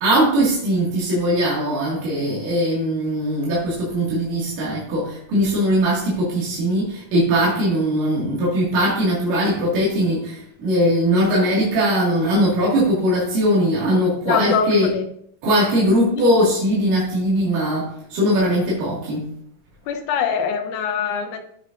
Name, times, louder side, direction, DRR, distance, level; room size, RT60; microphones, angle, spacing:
voice 1, 0.0-14.9 15.4-19.3, equal, 80° right, -6 dB, 3.8 m, -20 dB
voice 2, 14.2-15.1 16.2-16.3 19.9-21.4, left 6 dB, 75° left, 7 dB, 2.2 m, -23 dB
14.5 x 6.2 x 2.6 m, 0.68 s
omnidirectional pair, 3.8 m